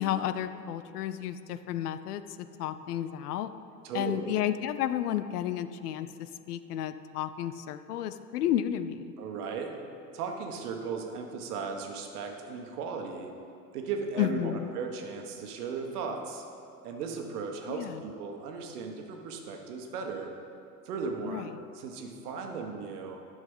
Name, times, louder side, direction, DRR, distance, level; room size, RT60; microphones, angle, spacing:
voice 1, 0.0-3.5 3.9-9.1 14.2-14.7 17.7-18.0 21.2-21.5, left 11 dB, 70° left, 12 dB, 0.6 m, -32 dB
voice 2, 3.8-4.4 9.2-9.7 10.1-13.3 13.7-16.4 16.8-20.3 20.8-21.4 21.7-23.2, right 5 dB, 70° right, 3 dB, 1.4 m, -36 dB
11.0 x 6.4 x 5.5 m, 2.6 s
figure-of-eight pair, 75°, 48 cm